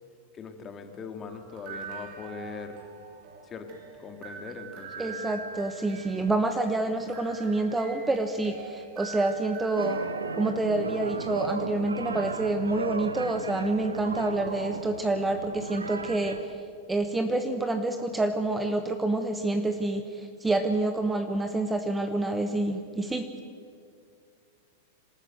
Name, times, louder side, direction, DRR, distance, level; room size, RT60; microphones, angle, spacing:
voice 1, 0.3-2.8 3.4-5.2, left 5 dB, 25° left, 6 dB, 2.3 m, -41 dB
sound 1, 1.3-12.0, right 6 dB, 50° right, 4.0 m, -45 dB
voice 2, 5.0-10.0 10.4-16.6 16.9-23.3, right 2 dB, 10° right, 7 dB, 1.2 m, -28 dB
sound 2, 9.8-16.4, right 4 dB, 85° right, 1.0 m, -35 dB
26.5 x 13.5 x 7.8 m, 2.4 s
figure-of-eight pair, 100°, 0 cm